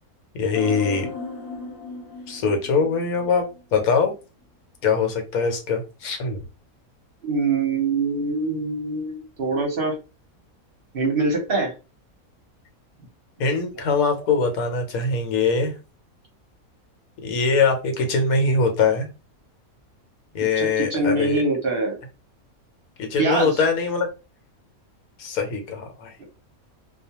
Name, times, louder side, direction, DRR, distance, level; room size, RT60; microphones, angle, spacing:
voice 1, 0.3-1.1 2.3-4.1 4.8-6.4 13.4-15.7 17.2-19.1 20.3-21.4 23.0-24.1 25.2-26.1, left 4 dB, 75° left, 1.2 m, -22 dB
sound 1, 0.5-3.8 4.1-4.2, left 5 dB, 45° left, 0.9 m, -35 dB
voice 2, 7.2-9.9 10.9-11.7 20.6-22.0 23.2-23.6 26.2-26.3, right 3 dB, 50° right, 0.8 m, -24 dB
2.3 x 2.3 x 2.8 m
omnidirectional pair, 1.5 m